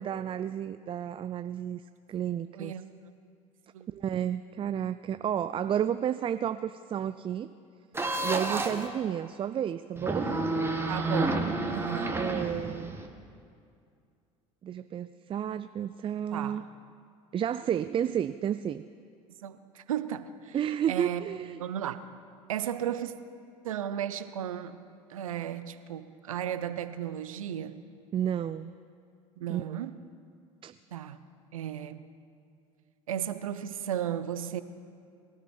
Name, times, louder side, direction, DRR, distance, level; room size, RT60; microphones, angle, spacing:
voice 1, 0.0-1.8 2.1-2.8 3.9-7.5 8.2-10.4 12.1-13.0 14.6-16.6 17.3-18.8 20.5-21.6 28.1-28.7 29.5-29.8 30.6-30.7, right 9 dB, 30° right, 13 dB, 0.4 m, -31 dB
voice 2, 2.6-2.9 3.7-3.9 8.5-8.7 10.9-12.2 16.3-16.6 19.4-20.6 20.9-21.2 21.6-22.0 22.5-23.1 23.6-24.8 25.1-27.8 29.4-30.0 30.9-31.2 31.5-32.1 33.1-34.6, right 10 dB, 85° right, 13 dB, 0.7 m, -35 dB
sound 1, 7.9-8.9 10.0-13.1, right 2 dB, 15° right, 1.7 m, -30 dB
22.5 x 13.5 x 4.4 m, 2.3 s
hypercardioid pair, 70°, 17 cm